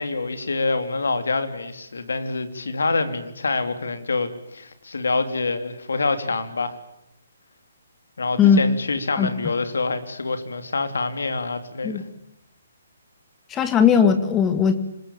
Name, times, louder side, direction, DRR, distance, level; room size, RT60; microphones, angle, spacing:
voice 1, 0.0-6.8 8.2-12.0, left 3 dB, 75° left, 9 dB, 3.2 m, -26 dB
voice 2, 13.5-14.7, left 7 dB, 15° left, 9 dB, 2.1 m, -17 dB
26.0 x 21.5 x 8.9 m, 0.78 s
figure-of-eight pair, 140°, 0 cm